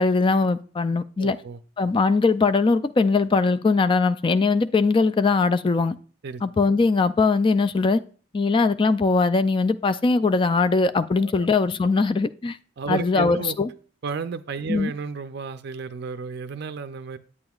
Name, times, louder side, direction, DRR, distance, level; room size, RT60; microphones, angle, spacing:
voice 1, 0.0-1.4 1.8-5.9 6.4-8.0 8.3-12.6 12.9-13.7 14.7-14.9, left 4 dB, 25° left, 0.3 m, -21 dB
voice 2, 1.2-1.6 6.2-6.4 11.2-11.5 12.8-13.6 14.0-17.2, right 5 dB, 55° right, 0.4 m, -32 dB
8.9 x 8.5 x 2.3 m
head